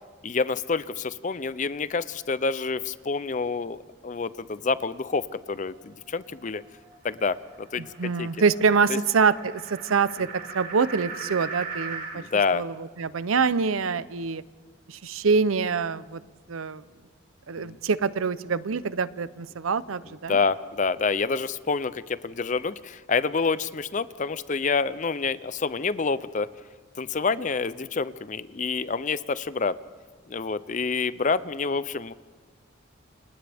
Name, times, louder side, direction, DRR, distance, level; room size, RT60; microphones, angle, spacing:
voice 1, 0.2-6.6 7.0-8.3 8.9-9.0 12.1-12.6 17.6-17.8 20.3-26.5 27.0-29.8 30.3-32.1, left 4 dB, 35° left, 16 dB, 0.5 m, -28 dB
sound 1, 5.5-12.2, right 5 dB, 50° right, 4.0 m, -40 dB
voice 2, 8.0-10.3 10.5-12.2 12.5-14.4 14.9-16.2 16.5-16.8 17.5-20.4, right 5 dB, 90° right, 16 dB, 0.6 m, -25 dB
29.5 x 27.0 x 3.5 m, 1.5 s
head